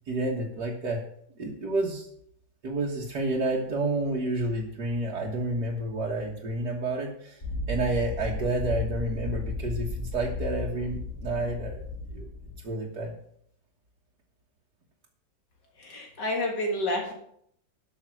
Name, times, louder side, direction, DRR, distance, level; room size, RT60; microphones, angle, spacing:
voice 1, 0.1-1.0 1.4-2.1 2.6-7.4 7.7-11.8 12.1-12.3 12.6-13.1, right 2 dB, 60° right, -4 dB, 2.1 m, -30 dB
sound 1, 7.4-12.6, left 3 dB, 35° left, 4.3 m, -34 dB
voice 2, 15.8-17.1, left 1 dB, 65° left, 1 dB, 2.4 m, -29 dB
12.5 x 6.5 x 6.1 m, 0.69 s
omnidirectional pair, 2.0 m